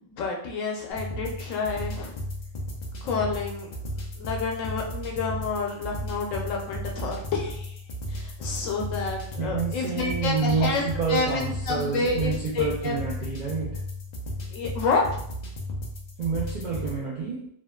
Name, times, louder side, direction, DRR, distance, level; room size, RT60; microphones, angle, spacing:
voice 1, 0.0-2.1 3.0-3.7 4.2-7.8 8.1-10.8 11.1-13.0 14.5-15.0, left 4 dB, 90° left, 0 dB, 1.0 m, -29 dB
sound 1, 0.9-17.0, left 1 dB, 60° left, 0.4 m, -35 dB
voice 2, 9.4-13.8 16.2-17.5, right 5 dB, 70° right, -5 dB, 0.4 m, -28 dB
3.0 x 2.1 x 2.3 m, 0.67 s
omnidirectional pair, 1.3 m